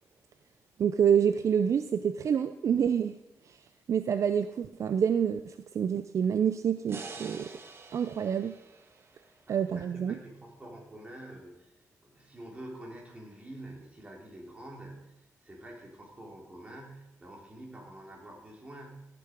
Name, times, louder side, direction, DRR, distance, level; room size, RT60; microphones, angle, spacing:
voice 1, 0.8-3.1 3.5-3.6 3.9-7.5 7.9-8.5 9.5-10.2, right 8 dB, 60° right, 10 dB, 0.5 m, -27 dB
sound 1, 6.9-10.1, right 4 dB, 40° right, 1.4 m, -46 dB
voice 2, 9.1-11.7 12.0-19.2, right 1 dB, 20° right, -1 dB, 3.4 m, -47 dB
15.5 x 6.9 x 5.1 m, 0.89 s
cardioid pair, 105°, 6 cm